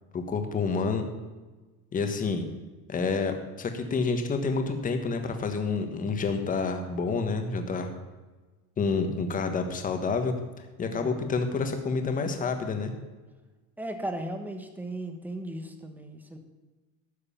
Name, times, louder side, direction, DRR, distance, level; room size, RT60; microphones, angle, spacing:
voice 1, 0.1-1.0 1.9-2.4 2.9-7.9 8.8-10.3 10.8-12.9, left 4 dB, 25° left, 6 dB, 1.5 m, -28 dB
voice 2, 10.9-11.3 13.8-16.4, right 1 dB, 5° right, 6 dB, 1.3 m, -36 dB
13.0 x 6.6 x 8.6 m, 1.2 s
cardioid pair, 160°, 33 cm